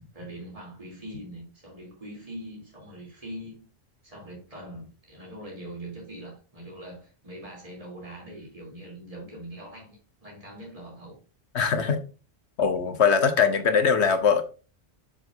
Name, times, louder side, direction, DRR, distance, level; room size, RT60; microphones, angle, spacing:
voice 1, 0.1-3.7 4.0-11.2, right 1 dB, 35° right, 3.3 m, -42 dB
voice 2, 11.5-12.0 12.6-14.4, left 6 dB, 85° left, 1.4 m, -21 dB
7.6 x 6.9 x 2.6 m
omnidirectional pair, 1.1 m